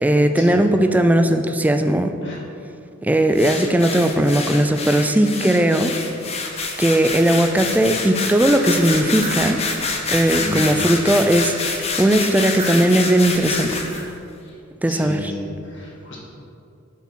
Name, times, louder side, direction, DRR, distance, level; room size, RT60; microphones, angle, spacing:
voice 1, 0.0-2.1 3.0-5.9 6.8-9.6 10.1-13.8 14.8-15.3, right 1 dB, 10° right, 7 dB, 0.3 m, -18 dB
sound 1, 3.4-14.0, left 4 dB, 30° left, 0.7 m, -27 dB
sound 2, 9.0-9.5 10.1-10.7 12.3-13.0 13.6-14.1, right 1 dB, 30° right, 1.2 m, -34 dB
voice 2, 10.4-10.7 14.5-14.6 14.9-16.2, left 1 dB, 60° left, -4 dB, 1.9 m, -33 dB
6.8 x 4.7 x 6.2 m, 2.6 s
head